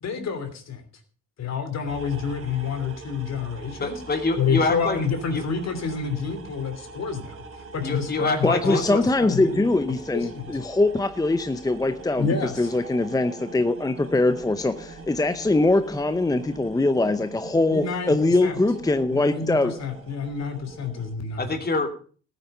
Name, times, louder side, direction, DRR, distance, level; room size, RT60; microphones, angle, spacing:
voice 1, 0.0-0.8 1.4-4.0 4.4-7.4 7.7-9.6 10.1-10.5 12.2-12.7 17.7-18.6 19.1-21.4, left 5 dB, 60° left, 3.1 m, -28 dB
sound 1, 1.9-21.1, right 3 dB, 50° right, 3.2 m, -43 dB
voice 2, 3.8-5.0 5.3-5.4 7.8-9.0 21.4-21.9, left 3 dB, 30° left, 2.9 m, -26 dB
voice 3, 8.4-19.8, left 2 dB, 10° left, 0.7 m, -22 dB
14.5 x 9.3 x 5.5 m
cardioid pair, 90°, 30 cm